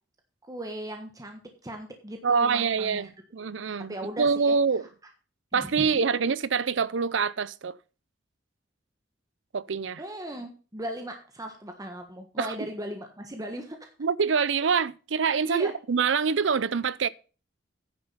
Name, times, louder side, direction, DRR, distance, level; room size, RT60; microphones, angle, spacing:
voice 1, 0.4-3.1 3.9-4.6 5.5-6.0 10.0-13.9 15.4-15.7, right 1 dB, 20° right, 1.4 m, -37 dB
voice 2, 2.2-4.9 5.5-7.8 9.5-10.0 12.4-12.5 14.0-17.1, right 5 dB, 75° right, 0.6 m, -25 dB
10.0 x 6.8 x 5.6 m
head